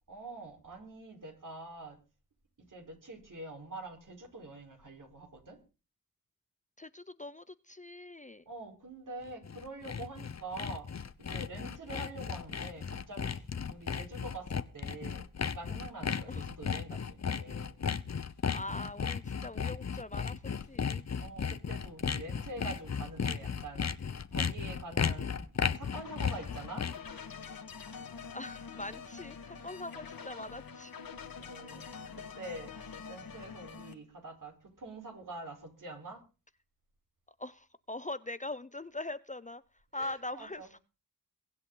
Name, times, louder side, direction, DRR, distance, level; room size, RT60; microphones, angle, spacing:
voice 1, 0.1-2.0 2.7-5.6 8.5-10.9 11.2-15.2 15.5-17.8 21.2-23.9 24.3-27.3 31.4-31.9 32.2-36.2 39.9-40.7, right 2 dB, 60° right, 3 dB, 4.4 m, -46 dB
voice 2, 6.8-8.4 16.3-16.5 18.5-20.4 20.7-21.0 28.3-30.9 37.4-39.6 39.9-40.8, left 2 dB, 20° left, 15 dB, 0.7 m, -42 dB
Sawing, 9.3-27.1, left 6 dB, 45° left, 1.0 m, -35 dB
sound 1, 25.9-33.9, left 6 dB, 70° left, 1.9 m, -46 dB
23.0 x 8.1 x 3.9 m, 0.32 s
cardioid pair, 60°, 36 cm